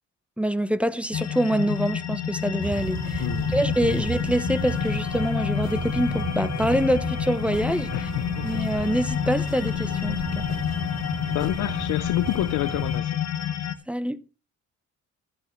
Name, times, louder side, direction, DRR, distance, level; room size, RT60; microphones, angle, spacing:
voice 1, 0.4-3.2 3.5-7.9 8.4-10.4 13.9-14.2, equal, 5° right, 0.7 m, -25 dB
sound 1, 1.1-13.7, left 10 dB, 60° left, 1.1 m, -29 dB
sound 2, 2.6-13.0, right 4 dB, 75° right, 3.5 m, -34 dB
voice 2, 3.2-3.6 3.8-4.1 7.9-8.6 11.3-13.2, left 15 dB, 80° left, 0.6 m, -28 dB
13.0 x 12.0 x 3.1 m
cardioid pair, 90°, 30 cm